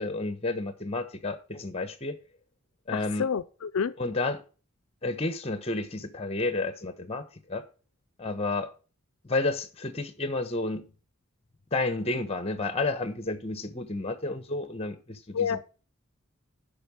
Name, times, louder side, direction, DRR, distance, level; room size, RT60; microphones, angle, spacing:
voice 1, 0.0-2.2 2.9-3.3 4.0-4.4 5.0-7.6 8.2-8.7 9.2-10.9 11.7-15.6, left 2 dB, 30° left, 1.0 m, -31 dB
voice 2, 2.9-3.9 15.3-15.6, left 6 dB, 75° left, 0.4 m, -29 dB
8.6 x 5.5 x 7.0 m
head